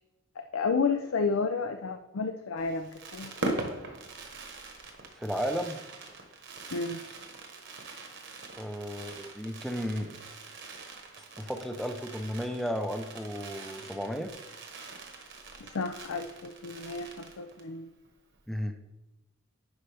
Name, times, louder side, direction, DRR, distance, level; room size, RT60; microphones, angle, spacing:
voice 1, 0.4-3.6 6.7-7.0 15.6-17.9, left 4 dB, 65° left, 7 dB, 0.5 m, -31 dB
Fireworks, 2.6-17.8 18.0-18.1 18.3-18.6, right 2 dB, 55° right, 1.1 m, -42 dB
voice 2, 5.2-5.8 8.6-10.2 11.4-14.3 18.5-18.8, equal, ahead, 5 dB, 0.6 m, -34 dB
9.8 x 5.2 x 3.4 m, 0.96 s
head